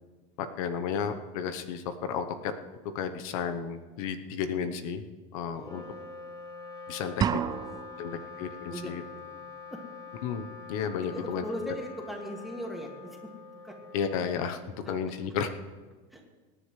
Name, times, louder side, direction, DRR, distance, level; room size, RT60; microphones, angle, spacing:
voice 1, 0.4-2.5 2.9-5.0 5.3-5.8 6.9-7.4 8.0-9.0 10.2-11.4 13.9-14.6 14.9-15.5, left 7 dB, 80° left, 9 dB, 1.0 m, -33 dB
Wind instrument woodwind instrument, 5.5-15.1, left 4 dB, 25° left, 4.3 m, -45 dB
voice 2, 5.5-6.2 7.2-7.6 8.1-8.3 8.7-9.4 9.7-9.9 11.1-13.4 13.6-13.7 16.1-16.2, equal, ahead, 0 dB, 2.2 m, -40 dB
sound 1, 7.2-8.2, right 8 dB, 20° right, 0.4 m, -29 dB
25.0 x 10.0 x 3.3 m, 1.3 s
supercardioid pair, 140°, 18 cm